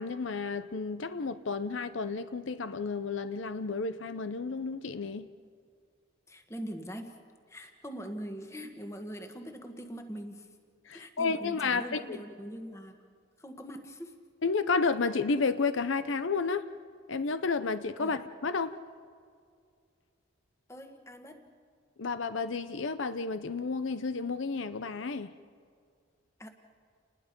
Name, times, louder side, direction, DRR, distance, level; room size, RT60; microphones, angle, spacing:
voice 1, 0.0-5.3 10.9-12.2 14.4-16.7 17.1-18.8 22.0-25.3, left 4 dB, 70° left, 0.7 m, -31 dB
voice 2, 6.3-7.2 7.5-10.6 10.9-13.0 13.4-14.2 18.0-18.2 20.7-21.5 26.4-26.5, equal, 15° left, 1.5 m, -42 dB
30.0 x 20.5 x 5.3 m
head